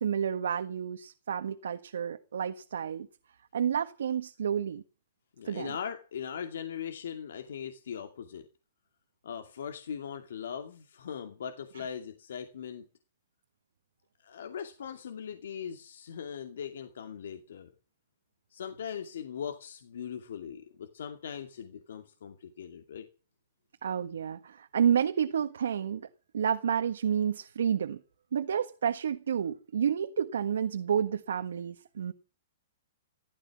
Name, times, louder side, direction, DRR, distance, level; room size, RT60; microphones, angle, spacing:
voice 1, 0.0-3.1 3.5-4.8 5.4-5.8 23.8-26.1 26.3-28.0 28.3-32.1, right 8 dB, 90° right, 1.5 m, -30 dB
voice 2, 5.4-8.5 9.2-12.9 14.2-17.7 18.5-23.1, left 8 dB, 75° left, 2.5 m, -40 dB
15.5 x 13.5 x 6.2 m
hypercardioid pair, 165°, 0 cm